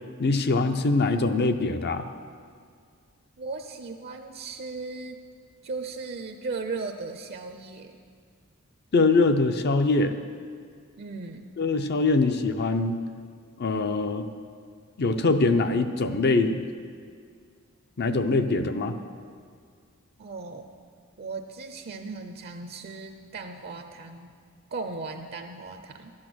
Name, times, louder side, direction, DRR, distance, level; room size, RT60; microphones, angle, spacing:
voice 1, 0.2-2.1 8.9-10.1 11.6-13.0 13.6-14.3 15.0-16.6 18.0-19.0, left 3 dB, 50° left, 8 dB, 0.6 m, -23 dB
voice 2, 3.4-5.2 5.6-8.0 11.0-11.5 20.2-20.7 21.2-24.3 24.7-26.1, right 3 dB, 45° right, 5 dB, 0.6 m, -37 dB
12.0 x 8.8 x 6.2 m, 2.1 s
head